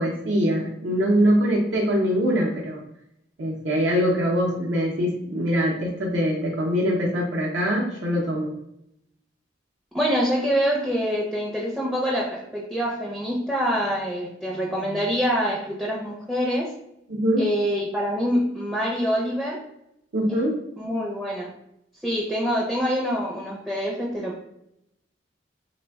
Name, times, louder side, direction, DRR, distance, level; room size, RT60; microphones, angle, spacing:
voice 1, 0.0-2.8 3.4-8.5 17.1-17.5 20.1-20.6, equal, 75° right, -3 dB, 0.6 m, -23 dB
voice 2, 9.9-16.7 17.4-19.6 20.3-20.4 20.8-21.5 22.0-24.4, equal, 5° right, -5 dB, 0.4 m, -25 dB
3.2 x 2.1 x 3.4 m, 0.79 s
head